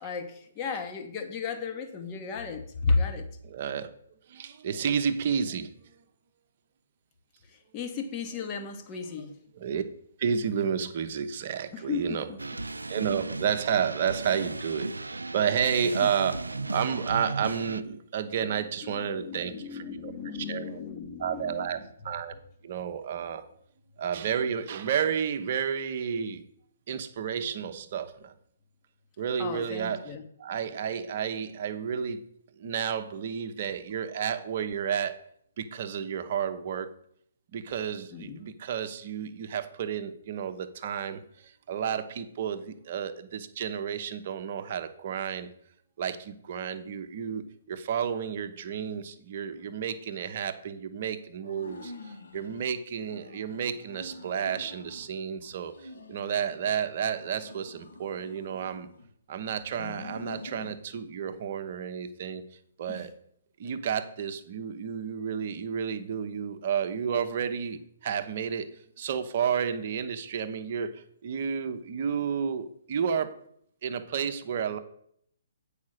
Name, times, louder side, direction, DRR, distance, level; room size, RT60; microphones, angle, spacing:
voice 1, 0.0-3.2 7.7-9.4 11.7-12.4 18.8-21.8 29.4-30.2 38.1-38.4 62.9-63.0, left 4 dB, 25° left, 1.1 m, -33 dB
voice 2, 3.4-3.9 4.3-5.7 8.5-8.7 9.5-9.8 10.2-12.3 12.9-20.8 21.2-22.3 22.6-23.5 24.0-26.4 26.9-28.3 29.2-30.1 30.4-32.2 32.6-35.2 35.6-36.9 37.5-45.5 46.0-58.9 59.3-62.4 62.8-63.1 63.6-68.7 69.0-73.3 73.8-74.8, right 7 dB, 45° right, 0.8 m, -31 dB
sound 1, 12.4-17.8, right 3 dB, 80° right, 0.4 m, -35 dB
sound 2, 51.4-52.7 53.1-55.1 55.5-56.8 57.2-59.1 59.6-60.8, left 2 dB, 70° left, 1.4 m, -46 dB
8.4 x 5.0 x 6.5 m
figure-of-eight pair, 130°, 0 cm